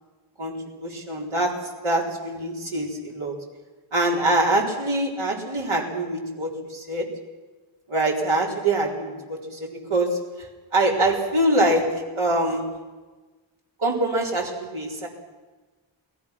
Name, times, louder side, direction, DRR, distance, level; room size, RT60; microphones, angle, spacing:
voice 1, 0.4-3.4 3.9-7.1 7.9-10.5 10.7-12.8 13.8-15.1, right 1 dB, 70° right, -1 dB, 4.3 m, -24 dB
28.5 x 19.0 x 6.0 m, 1.3 s
wide cardioid pair, 80°, 50 cm